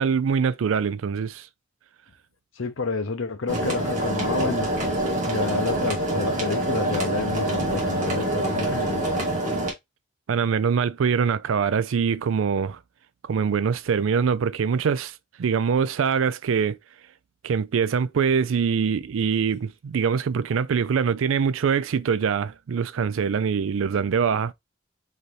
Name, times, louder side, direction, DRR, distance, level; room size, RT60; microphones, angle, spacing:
voice 1, 0.0-1.5 10.3-12.8 13.2-16.8 17.4-24.5, right 6 dB, 80° right, 0.4 m, -23 dB
voice 2, 2.6-4.7 5.3-9.1, left 3 dB, 75° left, 0.8 m, -29 dB
sound 1, 3.5-9.7, right 1 dB, 40° right, 1.7 m, -26 dB
4.1 x 4.0 x 3.1 m
head